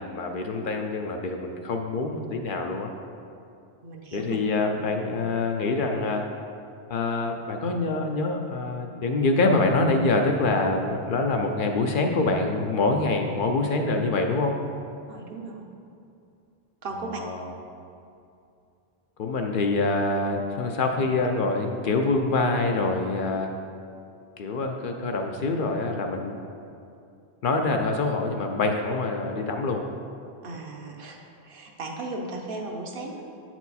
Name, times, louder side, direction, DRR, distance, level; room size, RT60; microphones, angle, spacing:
voice 1, 0.0-2.9 4.1-6.3 6.9-14.5 17.2-17.5 19.2-23.5 24.4-26.4 27.4-29.8, left 3 dB, 60° left, 3 dB, 0.6 m, -25 dB
voice 2, 3.8-4.4 15.1-15.7 16.8-17.2 30.4-33.2, right 2 dB, 60° right, 1 dB, 0.9 m, -36 dB
8.0 x 4.5 x 4.1 m, 2.6 s
omnidirectional pair, 1.1 m